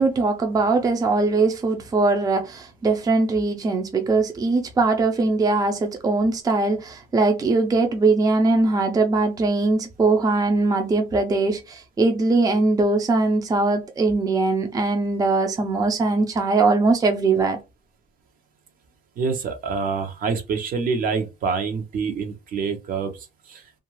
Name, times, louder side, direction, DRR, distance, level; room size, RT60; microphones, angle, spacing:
voice 1, 0.0-17.6, right 3 dB, 20° right, 0.5 m, -21 dB
voice 2, 19.2-23.6, right 5 dB, 55° right, 0.8 m, -26 dB
2.4 x 2.3 x 3.1 m
cardioid pair, 110°, 17 cm